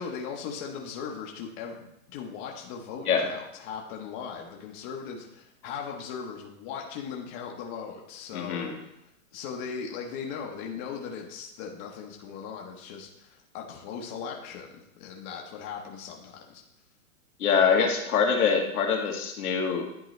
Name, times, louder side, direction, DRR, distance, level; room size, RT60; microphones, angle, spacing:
voice 1, 0.0-8.9 9.3-16.6, left 6 dB, 35° left, 0 dB, 0.9 m, -38 dB
voice 2, 8.3-8.8 17.4-19.8, left 6 dB, 80° left, 1 dB, 1.6 m, -24 dB
10.5 x 3.9 x 3.1 m, 0.83 s
hypercardioid pair, 135°, 44 cm